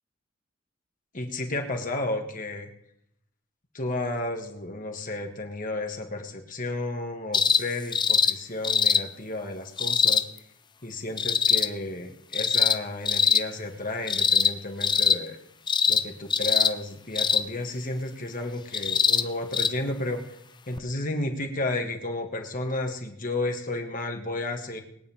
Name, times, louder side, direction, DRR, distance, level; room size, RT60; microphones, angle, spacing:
voice 1, 1.1-2.7 3.7-10.3 10.8-15.4 15.9-20.2 20.7-24.8, left 2 dB, 45° left, 3 dB, 1.9 m, -32 dB
sound 1, 7.3-7.6 7.9-8.3 8.6-9.0 9.8-10.2 11.2-11.7 12.3-12.8 13.1-13.4 14.1-14.5 14.8-15.2 15.7-16.0 16.3-16.7 17.2-17.4 18.7-19.2 19.5-19.7 20.8-20.9, left 6 dB, 25° left, 0.5 m, -22 dB
21.5 x 9.3 x 3.6 m, 0.73 s
head